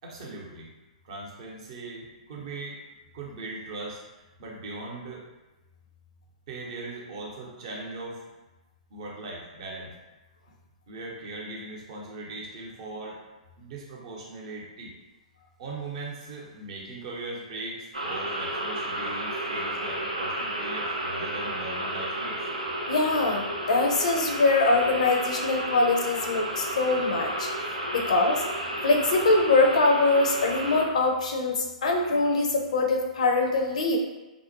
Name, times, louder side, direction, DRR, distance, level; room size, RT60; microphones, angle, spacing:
voice 1, 0.0-0.7 1.0-2.8 3.1-4.0 4.4-5.3 6.5-8.2 8.9-9.9 10.9-13.2 13.6-14.9 15.6-22.4, right 2 dB, 50° right, -3 dB, 0.7 m, -39 dB
sound 1, 17.9-30.8, right 1 dB, 85° right, 0.5 m, -32 dB
voice 2, 22.9-27.5 27.9-28.4 28.8-34.0, left 3 dB, 65° left, 2 dB, 0.4 m, -23 dB
2.5 x 2.0 x 2.7 m, 1.1 s
figure-of-eight pair, 115°, 4 cm